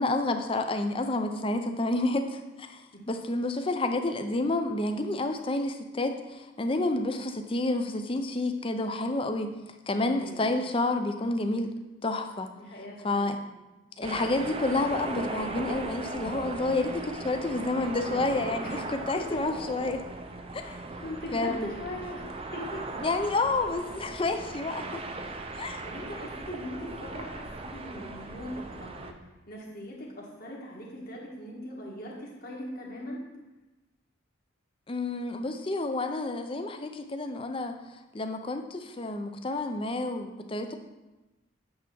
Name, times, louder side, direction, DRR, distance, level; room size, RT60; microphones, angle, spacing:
voice 1, 0.0-9.5 9.9-11.7 12.0-12.5 13.0-13.4 14.0-20.1 20.5-20.8 21.3-21.7 23.0-25.0 25.6-25.8 34.9-37.8 38.1-40.8, left 2 dB, 25° left, 6 dB, 0.5 m, -29 dB
voice 2, 12.6-13.4 18.6-18.7 19.1-19.4 20.6-22.9 25.8-29.1 29.5-33.2, left 1 dB, 45° left, -3 dB, 1.7 m, -40 dB
sound 1, 14.0-29.1, right 2 dB, 25° right, 0.5 m, -38 dB
8.6 x 3.5 x 6.1 m, 1.1 s
head